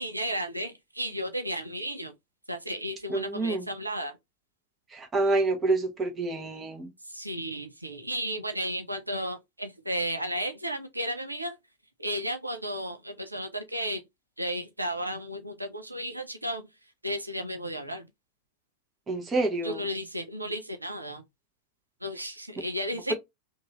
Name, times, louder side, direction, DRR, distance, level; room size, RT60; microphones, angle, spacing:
voice 1, 0.0-2.1 2.5-4.1 7.1-11.6 12.0-14.0 14.4-16.6 17.0-18.1 19.6-21.2 22.0-23.1, equal, 85° right, 0.5 m, -33 dB
voice 2, 3.1-3.7 4.9-6.9 19.1-19.8, right 2 dB, 20° right, 1.1 m, -27 dB
3.0 x 2.6 x 2.9 m
figure-of-eight pair, 90°, 0 cm